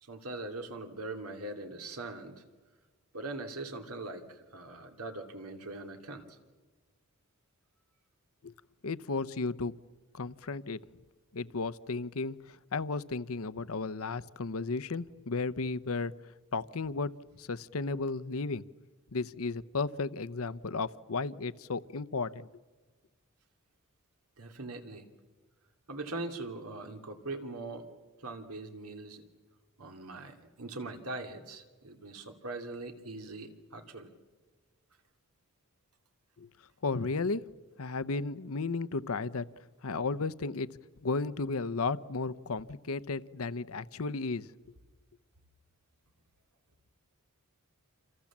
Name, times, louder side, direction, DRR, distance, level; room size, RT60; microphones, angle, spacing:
voice 1, 0.0-2.4 3.1-6.4 24.4-25.1 25.9-27.9 28.2-29.2 29.8-34.1, right 2 dB, 90° right, 5 dB, 2.7 m, -41 dB
voice 2, 8.8-9.7 10.1-10.8 11.3-16.1 16.5-17.1 17.4-18.6 19.1-22.5 36.4-36.5 36.8-37.4 37.8-39.5 39.8-40.7 41.0-44.5, left 3 dB, 70° left, 14 dB, 0.8 m, -34 dB
28.5 x 27.0 x 7.3 m, 1.3 s
head